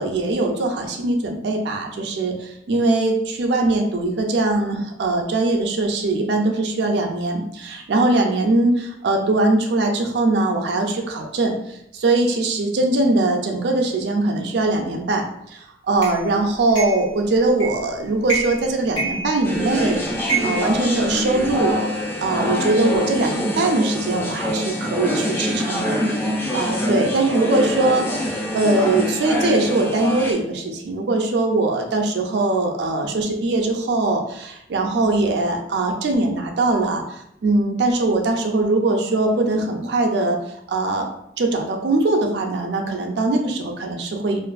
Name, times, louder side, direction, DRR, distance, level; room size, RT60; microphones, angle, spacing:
voice 1, 0.0-20.0 20.4-21.8 22.2-26.0 26.5-28.1 28.5-40.4 40.7-41.1 41.4-44.4, right 2 dB, 60° right, 3 dB, 0.4 m, -21 dB
sound 1, 16.0-16.1 16.7-17.1 17.6-17.9 18.2-18.6 19.0-19.8 20.3-21.5, right 4 dB, 75° left, 1.2 m, -27 dB
sound 2, 19.4-30.3, left 1 dB, 10° left, 0.3 m, -25 dB
2.5 x 2.4 x 2.3 m, 0.75 s
head